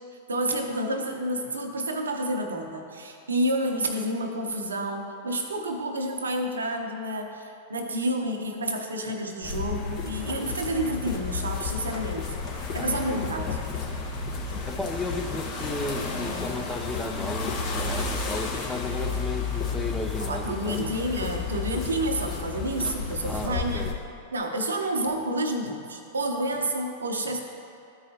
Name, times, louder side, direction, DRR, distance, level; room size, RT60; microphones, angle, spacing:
voice 1, 0.3-13.6 20.2-23.9 24.3-27.4, right 1 dB, 90° right, 3 dB, 0.8 m, -29 dB
sound 1, 9.4-23.9, left 5 dB, 45° left, 1.3 m, -32 dB
voice 2, 12.8-13.5 14.7-20.9 23.2-23.9, left 2 dB, 5° left, 4 dB, 0.6 m, -34 dB
13.0 x 4.7 x 2.9 m, 2.5 s
hypercardioid pair, 105°, 0 cm